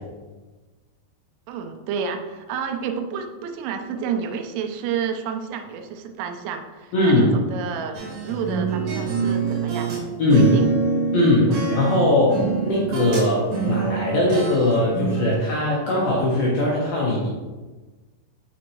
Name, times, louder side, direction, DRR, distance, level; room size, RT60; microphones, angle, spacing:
voice 1, 1.5-7.9 8.2-10.0 10.3-10.7 11.5-11.6, right 7 dB, 90° right, 5 dB, 3.3 m, -30 dB
voice 2, 6.9-7.3 10.2-10.5 11.1-17.3, left 1 dB, 75° left, -5 dB, 2.2 m, -20 dB
sound 1, 7.9-10.0 10.3-13.3 13.5-15.4, right 5 dB, 55° right, 2.6 m, -25 dB
7.2 x 6.4 x 3.0 m, 1.3 s
omnidirectional pair, 5.6 m